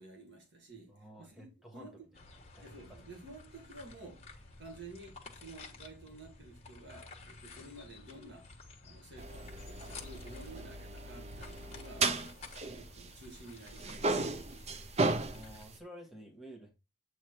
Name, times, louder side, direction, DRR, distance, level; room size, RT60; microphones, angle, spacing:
voice 1, 0.0-2.1 2.6-8.5 8.8-14.3, right 2 dB, 65° right, 2.0 m, -52 dB
voice 2, 0.9-2.0 2.5-3.1 15.1-16.7, equal, ahead, 1.5 m, -52 dB
sound 1, 2.1-15.7, left 3 dB, 35° left, 1.4 m, -53 dB
sound 2, 9.2-13.4 13.7-15.8, right 3 dB, 35° right, 0.6 m, -35 dB
8.4 x 3.3 x 4.4 m
head